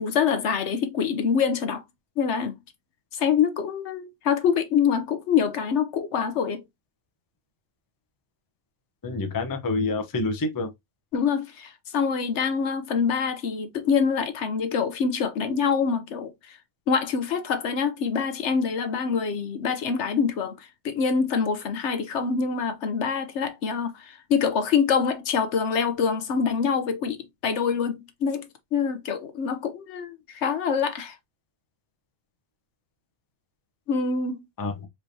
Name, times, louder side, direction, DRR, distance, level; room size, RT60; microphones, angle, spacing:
voice 1, 0.0-1.8 2.2-2.6 3.1-6.6 11.1-16.6 16.9-31.2 33.9-34.4, left 6 dB, 65° left, 1.0 m, -25 dB
voice 2, 9.0-10.7 34.6-34.9, left 3 dB, 25° left, 0.5 m, -27 dB
4.6 x 3.2 x 2.6 m
omnidirectional pair, 1.3 m